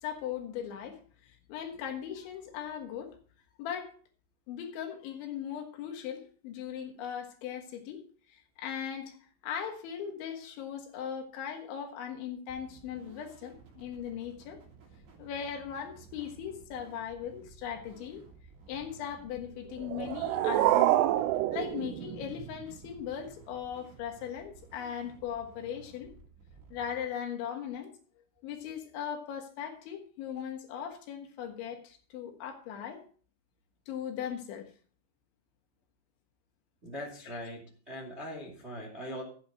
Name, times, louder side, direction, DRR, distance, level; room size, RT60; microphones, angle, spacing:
voice 1, 0.0-3.2 3.6-3.9 4.5-8.0 8.3-9.2 9.4-14.6 15.2-18.2 18.7-21.0 21.5-26.1 26.7-27.9 28.4-33.0 33.9-34.7 37.3-37.4, left 8 dB, 75° left, 3.7 m, -39 dB
sound 1, 12.5-27.0, right 6 dB, 60° right, 4.9 m, -55 dB
sound 2, 19.8-22.8, right 14 dB, 85° right, 3.2 m, -27 dB
voice 2, 36.8-39.2, equal, 25° right, 1.5 m, -41 dB
13.5 x 9.2 x 4.3 m
omnidirectional pair, 5.6 m